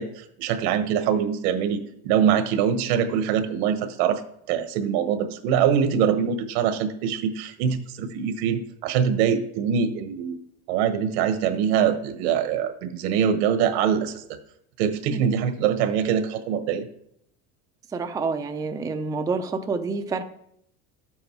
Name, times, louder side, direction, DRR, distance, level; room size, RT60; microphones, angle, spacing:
voice 1, 0.0-4.2 4.5-10.4 10.7-14.2 14.8-16.8, right 8 dB, 80° right, 9 dB, 1.5 m, -23 dB
voice 2, 17.9-20.2, right 4 dB, 10° right, 5 dB, 0.5 m, -28 dB
12.0 x 8.0 x 4.7 m, 0.72 s
cardioid pair, 150°, 32 cm